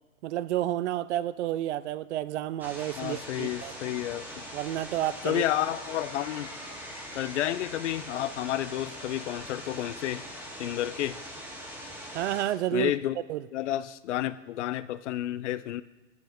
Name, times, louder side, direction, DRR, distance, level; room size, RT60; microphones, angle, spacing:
voice 1, 0.2-3.7 4.5-5.4 12.1-12.9 13.3-13.4, right 13 dB, 60° right, 17 dB, 0.5 m, -30 dB
sound 1, 2.6-12.4, equal, 5° right, 1.7 m, -42 dB
voice 2, 3.0-4.4 5.2-6.5 7.1-10.3 10.6-11.2 12.7-13.2 13.5-15.8, left 13 dB, 60° left, 16 dB, 0.6 m, -31 dB
11.0 x 8.2 x 4.4 m, 1.1 s
hypercardioid pair, 140°, 40 cm